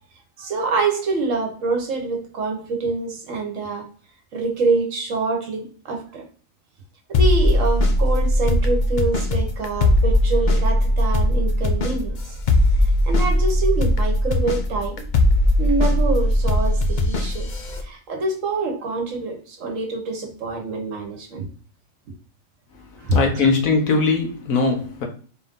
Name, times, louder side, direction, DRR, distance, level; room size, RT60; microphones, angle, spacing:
voice 1, 0.4-3.9 4.3-6.2 7.1-12.2 13.0-15.0 15.6-17.5 17.8-21.4 23.0-23.5, right 3 dB, 70° right, 1.3 m, -25 dB
sound 1, 7.1-17.8, left 1 dB, 50° left, 0.6 m, -19 dB
voice 2, 23.1-25.1, left 4 dB, 90° left, 1.4 m, -20 dB
4.3 x 2.6 x 3.6 m
omnidirectional pair, 1.4 m